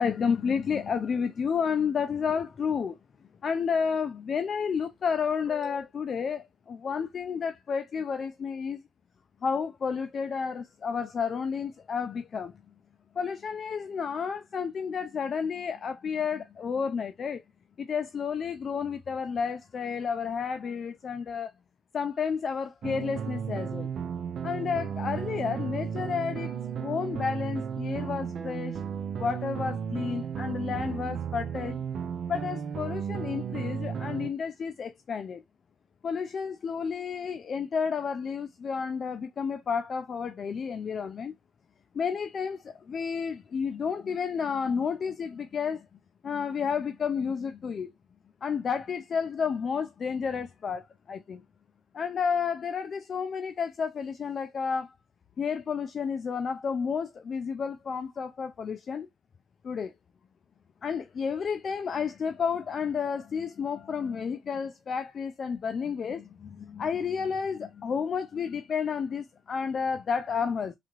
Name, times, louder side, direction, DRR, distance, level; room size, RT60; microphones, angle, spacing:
voice 1, 0.0-2.9 3.4-8.8 9.4-12.5 13.2-17.4 17.8-21.5 21.9-23.9 24.4-28.8 29.2-31.8 32.3-35.4 36.0-41.3 41.9-45.9 46.2-47.9 48.4-51.4 51.9-54.9 55.4-59.1 59.6-59.9 60.8-70.7, left 6 dB, 50° left, 0.3 m, -31 dB
sound 1, 22.8-34.3, right 7 dB, 60° right, 0.4 m, -34 dB
3.4 x 2.4 x 3.0 m
cardioid pair, 90°, 0 cm